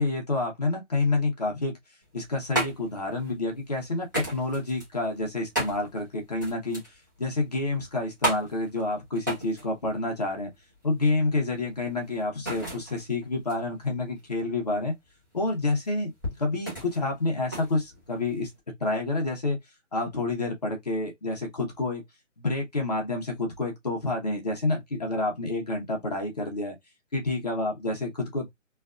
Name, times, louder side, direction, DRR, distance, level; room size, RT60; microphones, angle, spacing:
voice 1, 0.0-1.8 2.1-6.8 7.2-10.5 10.8-14.9 15.3-19.6 19.9-22.0 22.4-26.8 27.1-28.5, left 2 dB, 30° left, 0.8 m, -28 dB
sound 1, 2.0-18.6, right 1 dB, 15° right, 0.7 m, -36 dB
3.2 x 2.4 x 2.3 m
hypercardioid pair, 175°, 38 cm